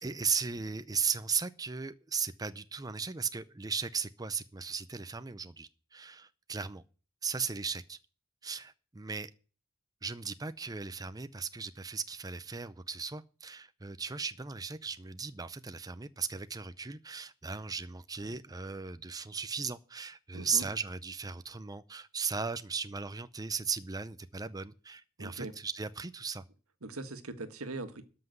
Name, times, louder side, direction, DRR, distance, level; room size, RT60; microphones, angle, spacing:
voice 1, 0.0-6.8 7.2-8.0 8.4-9.3 10.0-26.4, right 5 dB, 15° right, 0.5 m, -37 dB
voice 2, 20.3-20.7 25.2-25.5 26.8-28.0, right 2 dB, 85° right, 1.6 m, -41 dB
13.0 x 5.9 x 9.3 m
head